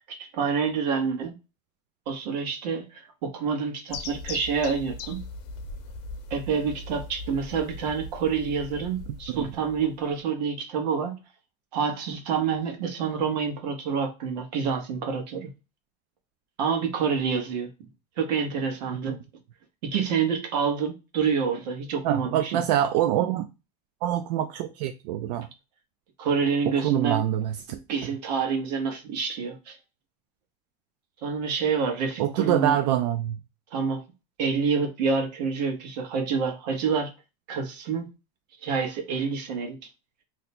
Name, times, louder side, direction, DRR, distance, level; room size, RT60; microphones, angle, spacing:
voice 1, 0.0-1.3 2.1-5.2 6.3-11.2 11.7-15.5 16.6-17.7 18.2-19.2 19.8-22.6 26.2-27.2 27.7-29.8 31.2-32.7 33.7-34.0 34.4-37.1 37.5-38.1 38.6-39.8, right 6 dB, 90° right, 1.0 m, -27 dB
sound 1, 3.9-10.2, left 3 dB, 75° left, 0.7 m, -40 dB
voice 2, 22.0-23.5 24.0-25.5 26.7-27.6 32.2-33.4, right 11 dB, 75° right, 0.4 m, -25 dB
2.7 x 2.1 x 4.1 m
supercardioid pair, 150°, 21 cm